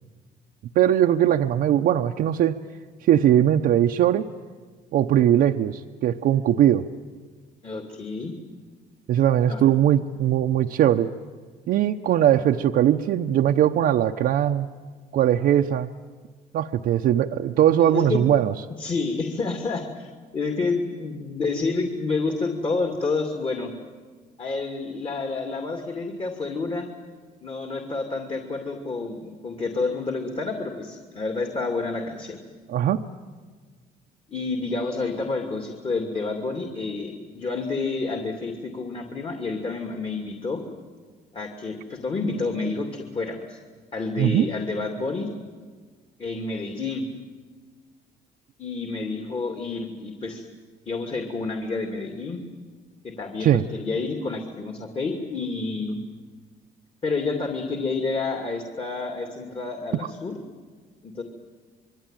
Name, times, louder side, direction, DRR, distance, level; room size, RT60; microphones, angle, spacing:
voice 1, 0.7-2.6 3.0-4.2 4.9-6.9 9.1-11.1 11.7-14.7 15.1-15.9 16.5-18.5 32.7-33.0 44.2-44.5 53.4-53.6, right 11 dB, 65° right, 3 dB, 0.8 m, -20 dB
voice 2, 7.6-8.3 9.5-9.7 17.9-18.2 18.8-20.1 20.3-23.7 24.4-26.9 27.4-32.4 34.3-40.6 41.3-43.6 43.9-45.3 46.2-47.1 48.6-50.4 50.9-52.4 53.0-56.0 57.0-60.4 61.0-61.2, left 3 dB, 35° left, 3 dB, 2.6 m, -29 dB
27.0 x 22.5 x 9.1 m, 1.5 s
cardioid pair, 110°, 17 cm